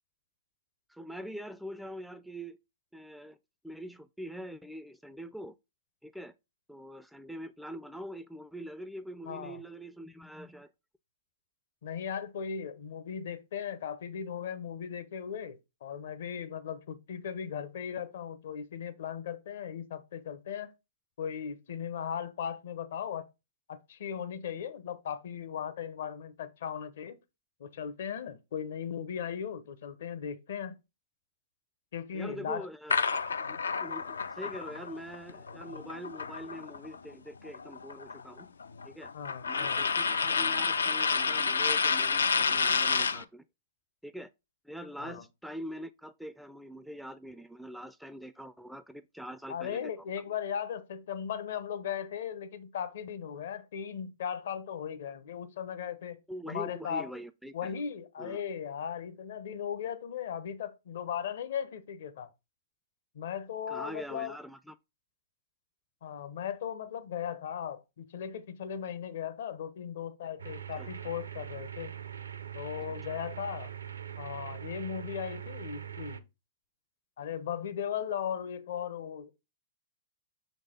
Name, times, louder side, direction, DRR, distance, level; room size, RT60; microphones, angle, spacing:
voice 1, 0.9-2.6 2.9-3.4 3.6-5.6 6.0-6.3 6.7-10.7 32.1-38.5 38.8-39.1 39.5-43.4 44.0-44.3 44.6-50.1 56.3-57.7 58.2-58.4 63.7-64.8 70.8-70.9 73.1-73.2, equal, ahead, 0.3 m, -44 dB
voice 2, 9.3-9.6 11.8-20.7 21.2-23.3 23.7-27.2 27.6-30.8 31.9-32.7 39.1-39.9 45.0-45.2 49.5-56.2 56.5-57.1 57.5-62.3 63.1-64.4 66.0-71.9 72.5-73.7 74.2-76.2 77.2-79.3, left 8 dB, 65° left, 0.8 m, -37 dB
sound 1, 32.9-37.0 37.3-43.2, left 5 dB, 85° left, 0.4 m, -30 dB
sound 2, 70.4-76.2, right 9 dB, 85° right, 0.6 m, -42 dB
6.4 x 4.0 x 3.7 m
hypercardioid pair, 115°, 0 cm